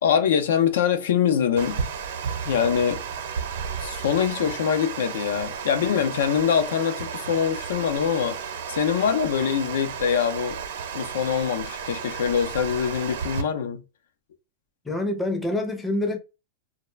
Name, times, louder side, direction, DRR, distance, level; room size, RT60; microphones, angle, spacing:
voice 1, 0.0-1.8 2.4-3.0 3.8-8.4 8.7-10.6 10.9-13.8, left 8 dB, 90° left, 0.5 m, -24 dB
Water, 1.6-13.4, right 6 dB, 85° right, 0.7 m, -33 dB
voice 2, 14.8-16.2, left 2 dB, 5° left, 0.5 m, -26 dB
2.4 x 2.1 x 3.1 m
supercardioid pair, 165°, 0 cm